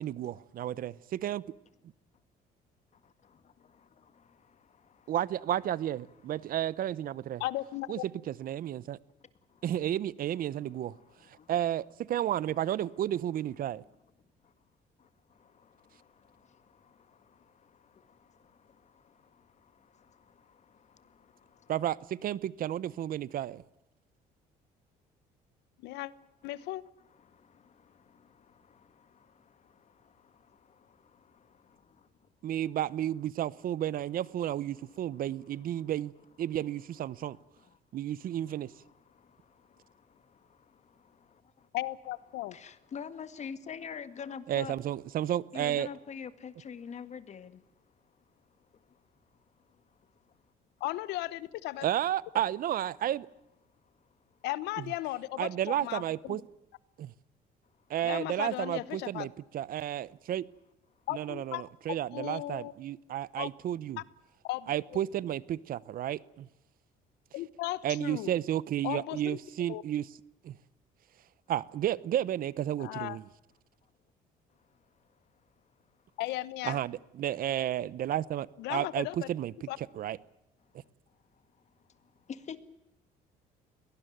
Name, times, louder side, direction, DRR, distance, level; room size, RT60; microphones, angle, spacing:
voice 1, 0.0-0.9 1.2-1.4 5.1-7.4 7.9-8.0 8.3-9.0 9.6-11.0 11.5-13.8 21.7-23.6 32.4-36.1 36.4-37.4 37.9-38.7 44.5-45.9 51.8-53.3 55.4-56.4 57.0-57.1 57.9-60.5 61.1-64.0 64.7-66.5 67.8-70.1 70.4-70.6 71.5-73.2 76.6-79.5 80.0-80.2, right 11 dB, 55° right, 0.8 m, -32 dB
voice 2, 3.2-5.1 6.3-6.7 9.2-9.6 10.5-11.5 14.4-14.5 15.0-21.7 27.1-32.6 34.7-35.9 37.1-37.8 38.2-41.7 42.5-44.8 45.5-50.3 53.8-54.4 57.8-57.9 74.5-75.2 75.6-76.0 80.8-82.6, left 7 dB, 45° left, 1.9 m, -50 dB
voice 3, 7.4-8.0 25.8-26.1 26.4-26.8 41.7-42.5 50.8-51.9 54.4-56.4 58.0-59.3 61.1-62.7 63.4-63.5 64.4-65.0 67.3-68.3 68.8-69.4 69.7-69.8 72.8-73.2 76.2-76.8 78.6-79.3 79.7-79.8, left 17 dB, 90° left, 1.0 m, -36 dB
22.5 x 18.5 x 9.2 m
cardioid pair, 110°, 17 cm